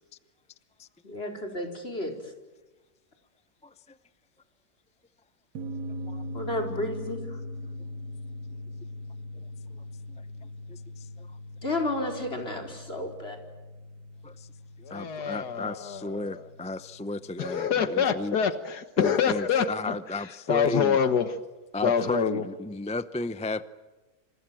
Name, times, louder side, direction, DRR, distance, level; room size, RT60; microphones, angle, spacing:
voice 1, 1.0-2.3 6.3-7.4 11.6-13.4, left 1 dB, 35° left, 5.0 m, -32 dB
voice 2, 3.6-4.0 6.1-6.2 10.1-11.3 14.2-14.5 14.9-18.4 19.0-21.0 21.7-23.7, left 2 dB, 10° left, 0.3 m, -34 dB
sound 1, 5.6-18.5, left 1 dB, 85° right, 2.0 m, -41 dB
voice 3, 14.8-16.4 17.4-19.9 20.5-21.4 21.8-22.4, left 7 dB, 80° left, 1.8 m, -26 dB
28.0 x 27.0 x 7.7 m
omnidirectional pair, 1.7 m